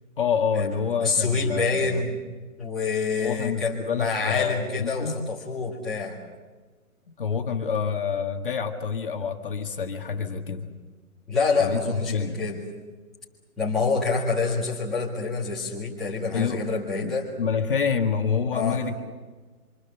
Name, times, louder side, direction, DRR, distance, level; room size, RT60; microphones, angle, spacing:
voice 1, 0.2-2.0 3.2-5.2 7.2-10.7 11.6-12.4 16.3-16.7 17.0-19.1, left 6 dB, 35° left, 4 dB, 1.8 m, -27 dB
voice 2, 1.0-2.2 2.6-6.2 11.3-12.6 13.6-17.3 18.5-18.8, left 4 dB, ahead, -9 dB, 1.8 m, -27 dB
26.5 x 25.5 x 7.1 m, 1.3 s
hypercardioid pair, 175°, 43 cm